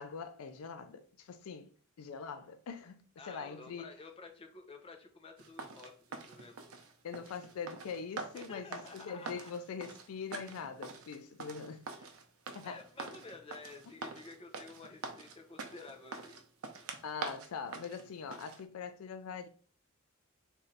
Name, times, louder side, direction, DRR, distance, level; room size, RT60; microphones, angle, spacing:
voice 1, 0.0-3.9 7.0-11.9 12.5-12.8 17.0-19.5, left 6 dB, 85° left, 0.4 m, -43 dB
voice 2, 3.2-6.6 8.3-9.5 12.0-12.1 12.6-16.4, left 3 dB, 25° left, 0.6 m, -51 dB
sound 1, 5.4-18.6, right 4 dB, 80° right, 0.6 m, -45 dB
3.1 x 2.7 x 3.8 m
head